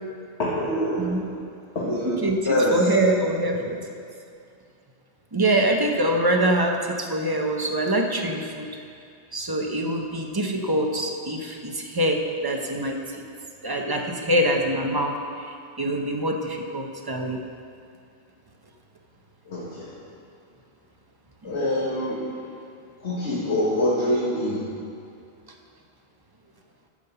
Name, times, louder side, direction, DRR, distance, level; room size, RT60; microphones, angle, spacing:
voice 1, 0.4-1.2 1.7-2.2 2.4-2.8 19.5-19.9 21.4-22.2 23.0-24.6, left 1 dB, 70° left, -8 dB, 1.8 m, -25 dB
voice 2, 2.0-3.8 5.3-8.7 9.3-13.3 13.6-15.1 15.4-17.4 21.5-21.6, right 1 dB, 25° right, 2 dB, 0.7 m, -24 dB
9.8 x 5.6 x 6.8 m, 2.4 s
omnidirectional pair, 1.2 m